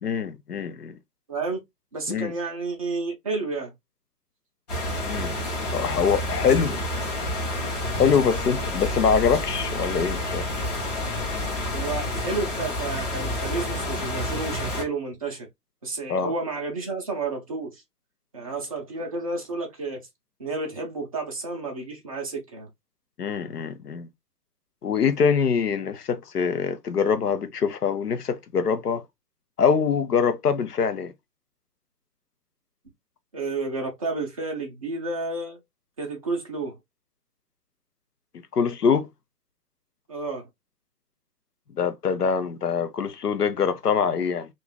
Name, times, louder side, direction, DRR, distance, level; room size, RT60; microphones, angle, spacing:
voice 1, 0.0-1.0 2.1-2.3 5.0-5.3 5.7-6.8 8.0-10.5 16.1-16.3 23.2-24.1 24.8-29.0 29.6-31.1 38.5-39.1 41.8-44.5, left 6 dB, 70° left, 0.7 m, -24 dB
voice 2, 1.3-1.6 1.9-3.7 11.7-15.5 15.8-17.8 18.3-20.0 20.4-22.7 33.3-35.6 36.0-36.7 40.1-40.5, right 3 dB, 25° right, 0.5 m, -31 dB
sound 1, 4.7-14.8, left 1 dB, 25° left, 0.8 m, -29 dB
2.5 x 2.3 x 3.7 m
figure-of-eight pair, 140°, 49 cm